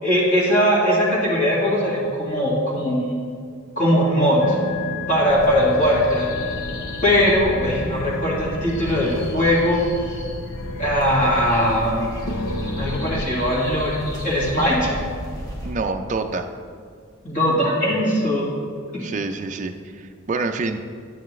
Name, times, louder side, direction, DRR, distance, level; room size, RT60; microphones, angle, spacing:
voice 1, 0.0-3.2 3.7-4.6 5.1-6.3 7.0-9.8 10.8-12.0 12.8-14.9 17.2-18.5 18.9-19.1, equal, 40° left, -6 dB, 1.8 m, -20 dB
sound 1, 4.4-13.2, left 2 dB, 75° left, 0.7 m, -32 dB
sound 2, 5.3-15.8, equal, 15° left, 1.2 m, -34 dB
voice 2, 15.6-16.5 19.0-20.9, right 3 dB, 35° right, 6 dB, 0.4 m, -27 dB
9.6 x 9.0 x 3.1 m, 2.1 s
head